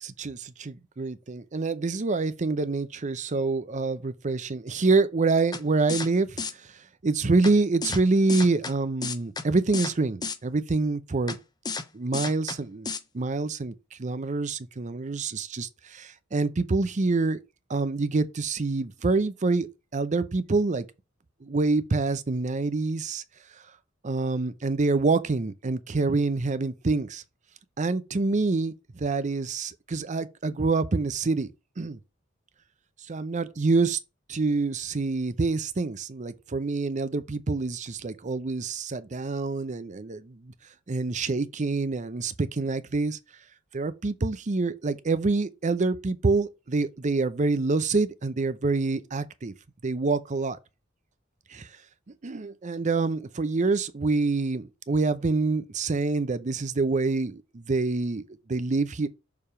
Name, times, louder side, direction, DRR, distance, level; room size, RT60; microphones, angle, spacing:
voice 1, 0.0-6.4 6.7-11.4 11.9-12.9 13.1-13.7 14.0-17.4 17.7-19.7 19.9-20.8 21.4-23.2 24.0-27.2 27.8-32.0 33.1-34.0 34.3-40.5 40.9-43.2 43.7-49.5 49.8-50.6 51.5-51.7 52.2-59.1, right 3 dB, 35° right, 0.6 m, -26 dB
sound 1, 5.5-5.6 5.9-6.1 6.4-6.5 7.4-7.5 7.8-8.0 8.3-8.7 9.0-9.4 9.7-9.9 10.2-10.4 11.3-11.4 11.7-11.8 12.1-12.6 12.9-13.0, left 4 dB, 20° left, 0.6 m, -31 dB
6.7 x 3.5 x 4.3 m
head